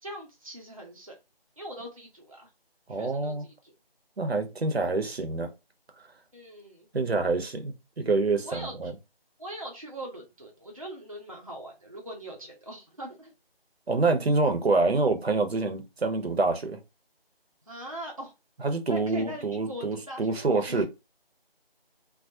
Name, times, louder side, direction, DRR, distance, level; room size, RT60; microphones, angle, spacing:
voice 1, 0.0-1.2 1.6-2.5 2.9-3.7 6.3-6.9 8.4-8.7 9.4-13.3 17.7-18.3 18.9-20.8, right 1 dB, 35° right, 0.5 m, -41 dB
voice 2, 2.9-3.5 4.2-5.5 6.9-8.9 13.9-16.8 18.6-20.8, right 3 dB, 80° right, 0.7 m, -26 dB
2.3 x 2.0 x 2.7 m
figure-of-eight pair, 165°, 31 cm